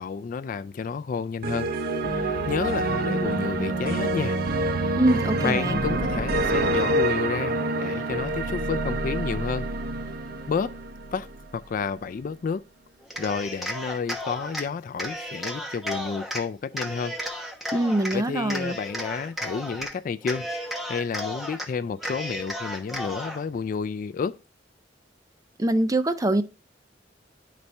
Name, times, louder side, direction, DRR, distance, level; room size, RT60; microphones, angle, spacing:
voice 1, 0.0-1.7 2.1-4.4 5.4-9.7 10.5-10.8 11.1-11.3 11.5-12.6 13.2-17.1 18.1-20.5 20.9-24.4, left 5 dB, 45° left, 0.3 m, -30 dB
sound 1, 1.4-11.5, right 2 dB, 55° right, 0.8 m, -27 dB
voice 2, 5.0-5.8 17.7-18.8 25.6-26.4, right 1 dB, 20° right, 0.6 m, -23 dB
Cheering, 13.0-14.7 15.0-16.4 16.7-18.2 18.5-19.9 20.2-21.7 22.0-23.4, equal, ahead, 1.1 m, -33 dB
10.5 x 4.2 x 3.3 m
head